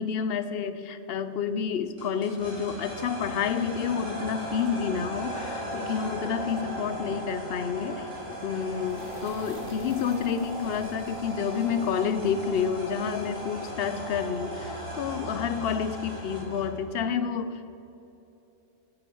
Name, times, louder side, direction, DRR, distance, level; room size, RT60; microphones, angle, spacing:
voice 1, 0.0-17.7, left 7 dB, 55° left, 12 dB, 0.8 m, -29 dB
sound 1, 2.0-16.8, equal, 65° right, 4.3 m, -37 dB
sound 2, 8.0-14.6, equal, 40° right, 2.6 m, -53 dB
11.0 x 9.9 x 7.7 m, 2.9 s
omnidirectional pair, 1.4 m